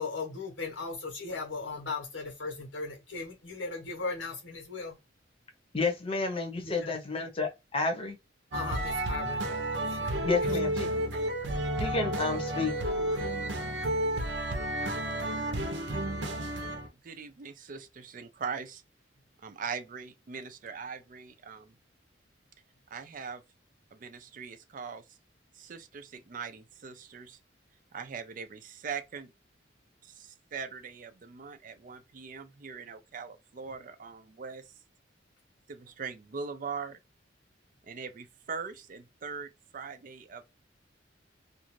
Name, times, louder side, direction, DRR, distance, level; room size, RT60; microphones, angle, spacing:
voice 1, 0.0-5.0 6.5-7.0 8.5-9.5 9.8-10.5, left 4 dB, 85° left, 1.2 m, -37 dB
voice 2, 5.7-8.2 10.2-10.9 11.8-12.7, left 3 dB, 30° left, 0.8 m, -30 dB
sound 1, 8.5-16.9, right 1 dB, 85° right, 0.7 m, -31 dB
voice 3, 17.0-18.8 19.4-21.7 22.9-23.4 23.9-25.2 25.5-27.4 27.9-29.3 30.0-34.7 35.7-37.0 37.8-40.4, right 5 dB, 45° right, 0.4 m, -41 dB
2.6 x 2.4 x 3.0 m
head